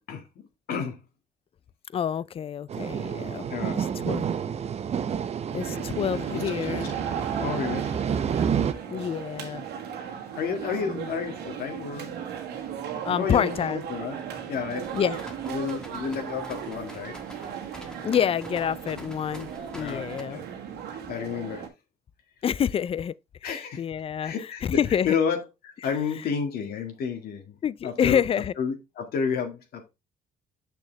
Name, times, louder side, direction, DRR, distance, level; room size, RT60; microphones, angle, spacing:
voice 1, 1.9-4.3 5.5-6.9 8.9-9.7 10.8-11.1 13.0-13.8 14.9-15.2 18.0-20.4 22.4-23.1 23.4-24.3 24.6-25.1 27.6-28.5, left 8 dB, 35° left, 0.4 m, -27 dB
sound 1, 2.7-8.7, right 7 dB, 40° right, 0.7 m, -29 dB
sound 2, 5.6-21.7, right 8 dB, 80° right, 1.6 m, -37 dB
voice 2, 6.1-6.9 7.4-7.9 8.9-9.1 10.3-12.2 13.1-14.2 14.5-15.0 15.5-17.1 19.7-20.4 21.1-21.7 23.4-23.8 24.2-24.8 25.0-27.6 27.8-28.2 28.6-29.9, left 6 dB, 65° left, 2.0 m, -31 dB
sound 3, 14.8-20.2, equal, 5° left, 1.4 m, -47 dB
6.9 x 6.3 x 3.3 m
cardioid pair, 110°, 17 cm